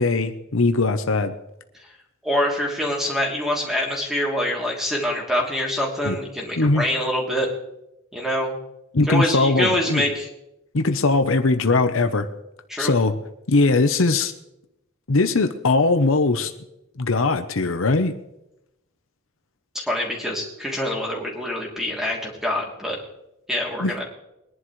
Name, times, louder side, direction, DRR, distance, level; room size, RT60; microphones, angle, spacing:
voice 1, 0.0-1.3 6.0-6.2 6.6-6.8 8.9-10.1 10.7-12.3 12.8-13.1 13.5-14.3 15.1-16.5 17.0-18.1 23.8-23.9, left 3 dB, 70° left, 8 dB, 0.9 m, -20 dB
voice 2, 2.2-7.5 8.1-8.6 9.1-10.3 12.7-12.9 19.7-23.0 23.5-24.0, left 1 dB, ahead, -2 dB, 3.0 m, -25 dB
22.0 x 11.0 x 3.2 m, 0.88 s
head